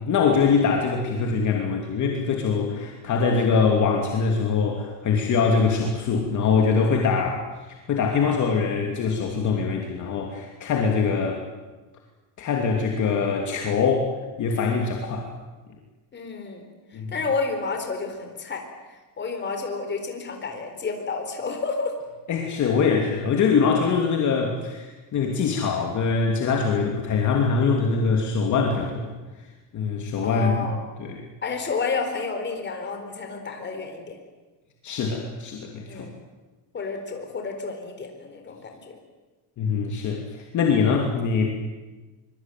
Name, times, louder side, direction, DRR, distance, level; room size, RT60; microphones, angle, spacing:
voice 1, 0.0-7.4 7.9-11.4 12.4-14.1 14.4-15.3 16.9-17.1 22.3-29.2 29.7-30.7 31.0-31.3 34.8-36.1 39.6-41.5, left 5 dB, 45° left, 1 dB, 3.0 m, -23 dB
voice 2, 16.1-16.6 16.9-18.6 19.2-22.0 30.2-30.8 31.4-34.2 35.9-36.2 36.7-39.0, left 4 dB, 25° left, 4 dB, 4.3 m, -30 dB
24.0 x 23.0 x 9.3 m, 1.2 s
cardioid pair, 165°, 42 cm